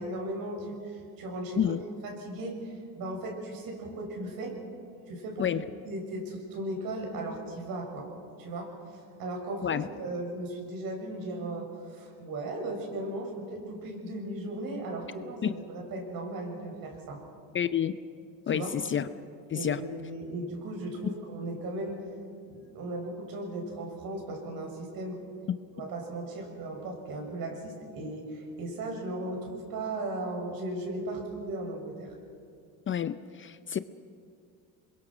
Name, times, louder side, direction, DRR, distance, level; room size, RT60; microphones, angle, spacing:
voice 1, 0.0-1.8 2.0-4.6 5.1-5.5 5.8-8.1 8.4-17.2 18.5-18.7 19.5-22.0 22.4-25.2 25.7-32.1, right 1 dB, 60° right, 2 dB, 6.6 m, -37 dB
voice 2, 17.5-17.9 18.5-19.1 19.5-19.8 32.9-33.8, left 9 dB, 30° left, 13 dB, 0.6 m, -29 dB
26.5 x 22.5 x 6.2 m, 2.3 s
supercardioid pair, 100°, 40 cm